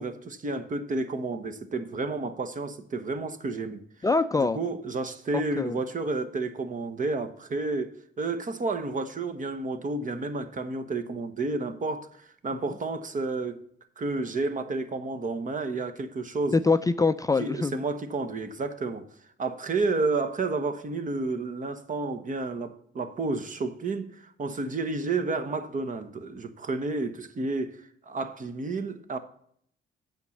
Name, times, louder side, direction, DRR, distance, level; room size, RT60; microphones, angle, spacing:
voice 1, 0.0-3.8 4.4-13.6 14.0-16.6 17.4-19.1 19.4-29.2, right 3 dB, 40° right, 1.1 m, -31 dB
voice 2, 4.0-4.6 5.6-5.8 16.5-17.8, left 3 dB, 15° left, 0.4 m, -24 dB
8.1 x 5.3 x 7.0 m
cardioid pair, 90°, 20 cm